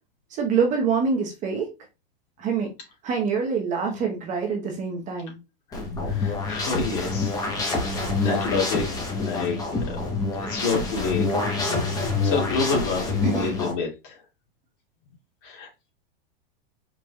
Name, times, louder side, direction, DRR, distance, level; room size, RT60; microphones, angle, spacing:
voice 1, 0.3-1.7 2.4-2.7 3.0-5.4 13.2-13.5, right 5 dB, 25° right, 1 dB, 0.9 m, -25 dB
voice 2, 5.7-7.8 8.1-8.9 9.2-10.0 10.3-11.3 11.6-14.2 15.4-15.9, left 4 dB, 55° left, -1 dB, 2.3 m, -29 dB
sound 1, 5.7-13.7, left 3 dB, 10° left, 0.9 m, -26 dB
4.8 x 3.8 x 2.3 m, 0.26 s
supercardioid pair, 160°, 31 cm